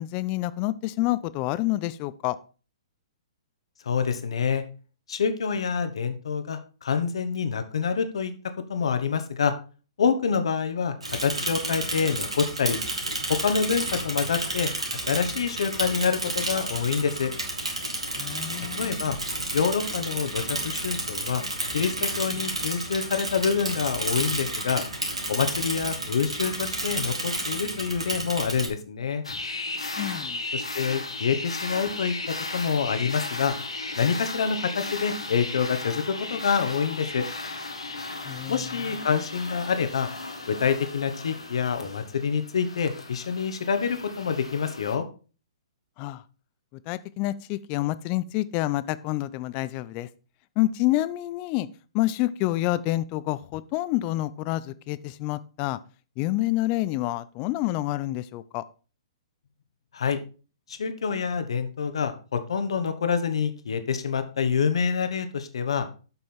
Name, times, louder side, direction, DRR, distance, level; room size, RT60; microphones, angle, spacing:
voice 1, 0.0-2.4 18.2-19.0 30.0-30.4 38.2-38.7 46.0-46.2 46.9-50.1 50.6-51.7 51.9-55.8 56.2-58.6, left 16 dB, 35° left, 16 dB, 0.5 m, -28 dB
voice 2, 3.8-4.6 5.1-8.3 8.7-9.5 10.0-12.8 13.3-14.7 15.1-17.3 18.8-19.2 19.5-21.4 21.7-24.8 25.3-29.2 30.5-32.1 32.5-33.6 34.0-37.2 38.5-40.1 40.5-45.0 59.9-60.2 60.7-65.9, left 6 dB, 65° left, 9 dB, 1.1 m, -26 dB
Bicycle / Mechanisms, 11.0-28.7, right 2 dB, 85° right, 2.6 m, -31 dB
sound 1, 29.2-45.0, left 3 dB, 85° left, 1.5 m, -36 dB
7.9 x 5.4 x 4.4 m, 0.36 s
figure-of-eight pair, 120°, 3 cm